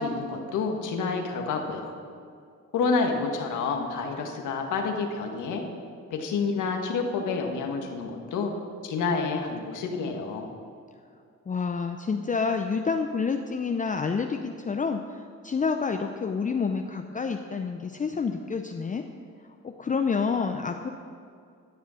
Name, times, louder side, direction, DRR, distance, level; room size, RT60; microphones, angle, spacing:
voice 1, 0.0-1.9 2.7-5.6 6.1-8.5 8.8-10.5, left 4 dB, 85° left, 3 dB, 1.7 m, -29 dB
voice 2, 11.5-19.0 19.6-20.9, left 5 dB, 25° left, 5 dB, 0.6 m, -28 dB
13.0 x 7.1 x 6.3 m, 2.3 s
cardioid pair, 90°, 30 cm